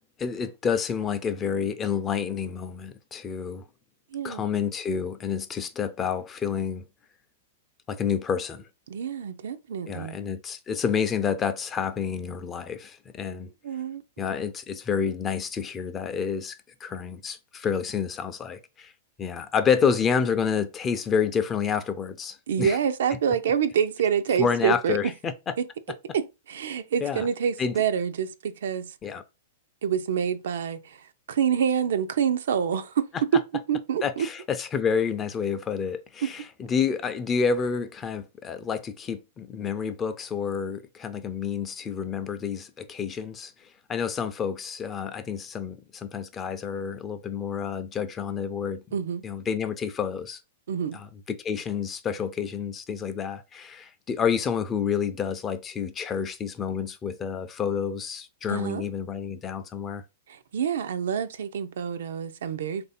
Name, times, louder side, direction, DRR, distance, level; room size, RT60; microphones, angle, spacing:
voice 1, 0.2-3.6 4.2-6.8 7.9-8.7 9.9-13.5 14.2-18.9 19.2-22.8 24.4-25.5 27.0-27.3 27.6-27.7 29.0-29.2 34.0-48.8 49.2-50.4 50.9-60.0, left 6 dB, 25° left, 0.5 m, -29 dB
voice 2, 4.1-4.4 8.9-10.2 13.6-14.0 22.5-25.1 25.6-25.7 26.1-28.9 29.8-33.1 33.3-33.4 33.7-34.3 36.2-36.3 48.9-49.2 50.7-51.0 58.5-58.8 60.3-62.9, right 8 dB, 70° right, 0.4 m, -27 dB
3.3 x 2.6 x 4.1 m
hypercardioid pair, 115°, 0 cm